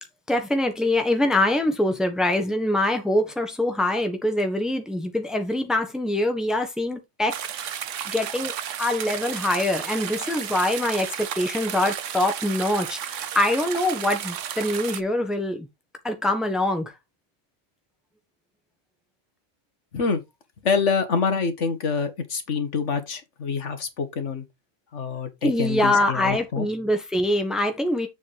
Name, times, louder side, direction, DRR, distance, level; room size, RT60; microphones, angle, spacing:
voice 1, 0.3-7.8 8.0-8.5 8.8-15.7 16.0-16.9 25.4-28.1, left 1 dB, ahead, 1.3 m, -24 dB
sound 1, 7.3-15.0, right 9 dB, 80° right, 1.1 m, -33 dB
voice 2, 20.6-24.5 24.9-26.7, left 5 dB, 70° left, 1.7 m, -26 dB
7.3 x 6.3 x 3.4 m
omnidirectional pair, 1.3 m